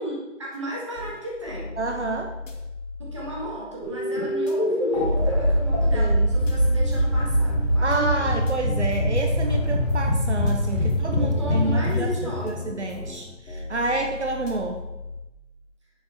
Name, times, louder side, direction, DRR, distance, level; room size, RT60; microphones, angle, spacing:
voice 1, 0.0-1.8 3.0-8.3 10.7-12.7, equal, 25° right, -4 dB, 2.0 m, -35 dB
sound 1, 0.5-0.6 1.0-1.2 1.5-3.6 4.5-4.6 5.0-5.2 5.5-7.6 8.5-8.6 9.0-9.2 9.5-11.6 12.5-13.2 13.5-15.3, left 3 dB, 90° left, 2.3 m, -38 dB
voice 2, 1.8-2.3 5.9-6.3 7.8-14.8, right 3 dB, 60° right, 4 dB, 1.2 m, -29 dB
sound 2, 3.8-13.2, equal, 25° left, 2.8 m, -23 dB
sound 3, 6.2-13.2, left 2 dB, ahead, 1.6 m, -43 dB
10.0 x 7.3 x 4.3 m, 0.98 s
hypercardioid pair, 180°, 38 cm